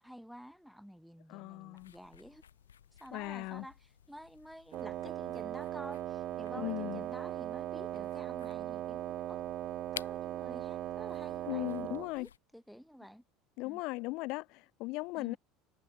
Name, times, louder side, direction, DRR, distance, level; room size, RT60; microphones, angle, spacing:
voice 1, 0.0-2.4 2.9-9.4 9.9-13.2 13.6-13.8 15.2-15.4, equal, ahead, 5.1 m, -51 dB
voice 2, 1.3-1.9 3.1-3.7 6.5-7.0 11.4-12.3 13.6-15.4, left 24 dB, 55° left, 2.3 m, -38 dB
sound 1, 1.7-12.4, left 9 dB, 75° left, 3.2 m, -54 dB
Wind instrument woodwind instrument, 4.7-12.1, right 13 dB, 45° right, 2.1 m, -39 dB
figure-of-eight pair, 70°, 0 cm